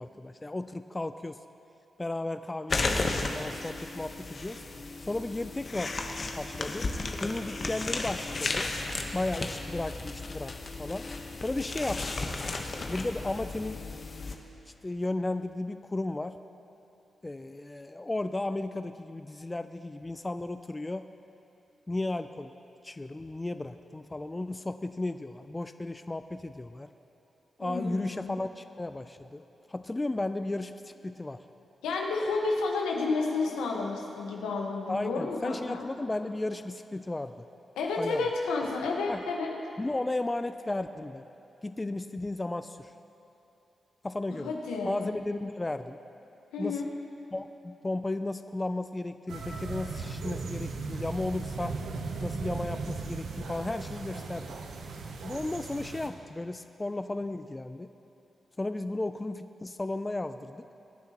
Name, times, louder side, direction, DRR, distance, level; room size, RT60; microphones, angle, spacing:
voice 1, 0.0-1.4 2.0-4.6 5.1-5.9 6.4-6.9 7.2-8.7 9.1-10.5 10.8-11.0 11.4-12.5 12.9-13.8 14.8-16.3 17.2-21.0 21.9-22.5 22.8-26.9 27.6-29.4 29.7-31.4 34.9-37.3 38.0-38.3 39.1-39.2 39.8-41.2 41.6-42.9 44.0-44.5 44.8-46.0 46.6-46.8 47.3-51.7 52.2-54.5 55.2-57.9 58.6-60.6, left 2 dB, 25° left, 10 dB, 0.5 m, -34 dB
sound 1, 2.7-14.3, left 3 dB, 50° left, 1.1 m, -34 dB
voice 2, 27.6-28.4 31.8-35.8 37.8-39.5 44.4-45.1 46.5-46.9, left 3 dB, 90° left, 0 dB, 1.3 m, -31 dB
sound 2, 49.3-56.1, right 4 dB, 75° right, 0.9 m, -37 dB
23.0 x 9.3 x 3.0 m, 3.0 s
supercardioid pair, 45°, 0 cm